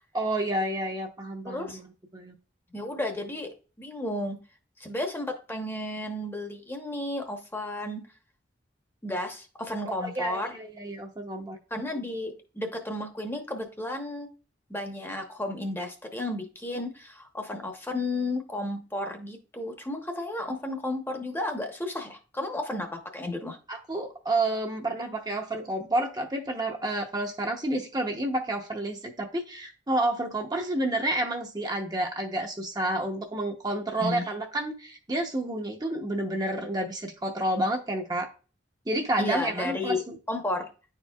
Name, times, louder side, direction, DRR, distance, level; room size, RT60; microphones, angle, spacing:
voice 1, 0.1-1.9 2.1-2.3 9.8-11.6 23.7-38.3 38.9-40.2, right 1 dB, 20° right, 0.8 m, -30 dB
voice 2, 1.4-1.8 2.7-3.5 3.8-4.4 4.8-8.0 9.0-10.5 11.7-14.3 14.7-23.6 34.0-34.2 39.2-40.0 40.3-40.7, left 1 dB, 10° left, 0.9 m, -33 dB
10.5 x 4.5 x 2.3 m
head